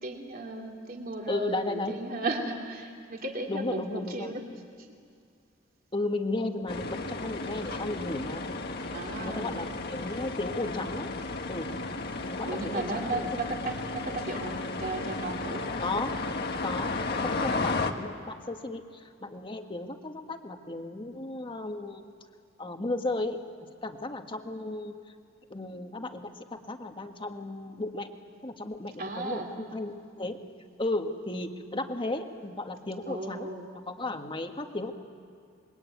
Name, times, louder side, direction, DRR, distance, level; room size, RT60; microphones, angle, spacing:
voice 1, 0.0-4.4 4.8-4.9 8.9-9.5 12.4-15.7 29.0-29.5 33.1-33.7, right 2 dB, 50° right, 1 dB, 2.9 m, -35 dB
voice 2, 1.3-2.0 3.5-4.3 5.9-8.5 9.2-11.1 11.5-11.7 12.2-13.4 15.8-16.2 16.6-22.0 22.6-23.4 23.8-24.9 25.5-28.1 28.4-30.4 30.8-34.9, left 2 dB, 25° left, 5 dB, 1.6 m, -34 dB
sound 1, 6.7-17.9, left 3 dB, 55° left, 1.6 m, -34 dB
25.5 x 22.5 x 9.3 m, 2.3 s
head